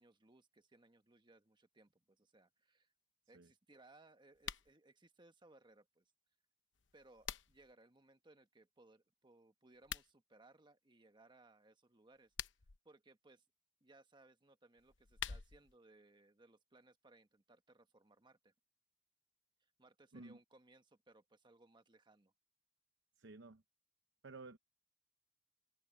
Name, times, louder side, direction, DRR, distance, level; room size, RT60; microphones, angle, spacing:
voice 1, 0.0-2.9 3.3-6.1 6.9-12.3 12.8-13.4 13.8-18.5 19.6-22.3, right 2 dB, 25° right, 1.3 m, -66 dB
sound 1, 4.3-4.7 6.7-7.7 9.7-10.1 12.1-12.8 14.8-15.7, left 9 dB, 90° left, 0.9 m, -47 dB
voice 2, 23.2-23.6 24.2-24.6, right 3 dB, 80° right, 0.8 m, -53 dB
head